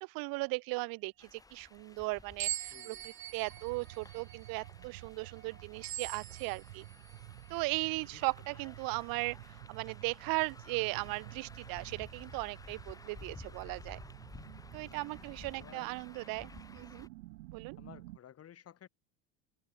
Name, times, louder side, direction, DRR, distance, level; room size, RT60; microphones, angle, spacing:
voice 1, 0.0-3.0 3.3-6.8 7.5-9.4 9.7-14.0 14.7-17.1 17.5-17.8, right 25 dB, 55° right, 0.9 m, -37 dB
sound 1, 1.2-17.1, left 3 dB, 10° left, 0.8 m, -54 dB
Wrench resonating, 2.4-7.2, right 14 dB, 30° right, 0.5 m, -43 dB
voice 2, 2.7-3.0 8.1-8.2 14.8-15.2 15.5-16.0 16.4-16.5 17.8-18.9, left 10 dB, 35° left, 4.0 m, -55 dB
sound 2, 3.2-18.2, right 20 dB, 90° right, 2.6 m, -52 dB
supercardioid pair, 115°, 40 cm